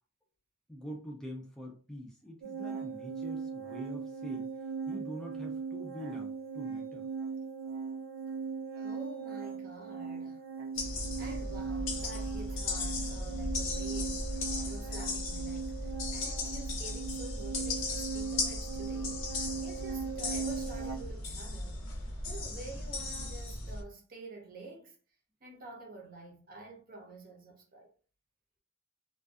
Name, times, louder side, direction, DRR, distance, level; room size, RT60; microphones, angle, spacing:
voice 1, 0.7-4.5 4.9-7.1, equal, 5° left, 0.4 m, -45 dB
sound 1, 2.4-21.0, right 5 dB, 90° right, 0.6 m, -39 dB
voice 2, 8.8-10.5 10.8-19.3 19.6-25.0 25.4-27.9, right 2 dB, 45° right, 0.7 m, -49 dB
sound 2, 10.8-23.8, left 2 dB, 75° left, 0.6 m, -36 dB
2.5 x 2.3 x 2.3 m
head